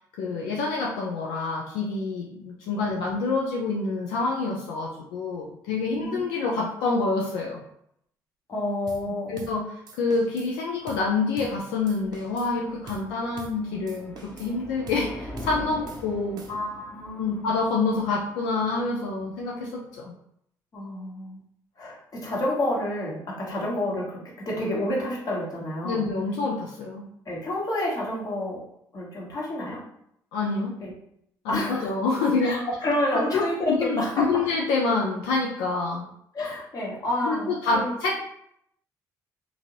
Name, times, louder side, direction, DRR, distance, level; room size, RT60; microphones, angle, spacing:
voice 1, 0.2-7.6 9.3-9.7 10.0-16.4 17.2-20.1 25.8-27.1 30.3-30.8 31.4-32.6 33.7-36.1 37.2-38.2, left 3 dB, 90° left, -2 dB, 0.4 m, -27 dB
voice 2, 5.9-6.2 8.5-9.4 16.5-17.4 20.7-21.4 21.8-26.1 27.2-28.6 28.9-29.8 30.8-30.9 31.5-31.9 32.4-34.3 36.3-38.0, left 1 dB, 50° left, -4 dB, 1.3 m, -29 dB
sound 1, 8.9-9.1 9.4-9.6 9.9-10.5 10.9-11.1 11.4-11.6 11.9-12.5 12.9-13.1 13.4-13.6 13.9-14.6 14.9-15.1 15.4-15.6 15.9-16.8, right 4 dB, 55° right, 0.5 m, -45 dB
sound 2, 10.9-19.9, left 1 dB, 20° left, 0.8 m, -43 dB
2.6 x 2.6 x 3.0 m, 0.73 s
supercardioid pair, 70°, 8 cm